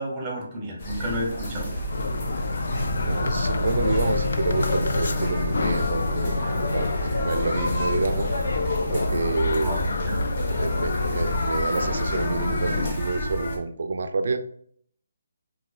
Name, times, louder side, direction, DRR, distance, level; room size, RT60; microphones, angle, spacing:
voice 1, 0.0-1.8 9.6-10.2, equal, 15° right, -3 dB, 0.8 m, -31 dB
sound 1, 0.8-13.6, equal, 30° left, 0.7 m, -30 dB
sound 2, 1.9-12.9, left 3 dB, 60° left, 0.3 m, -29 dB
Boat Water vehicle, 2.6-11.4, left 2 dB, 80° left, 0.8 m, -30 dB
voice 2, 3.0-8.3 8.9-9.8 10.6-14.4, right 3 dB, 55° right, 8 dB, 0.4 m, -28 dB
3.8 x 2.6 x 2.3 m, 0.62 s
hypercardioid pair, 170°, 0 cm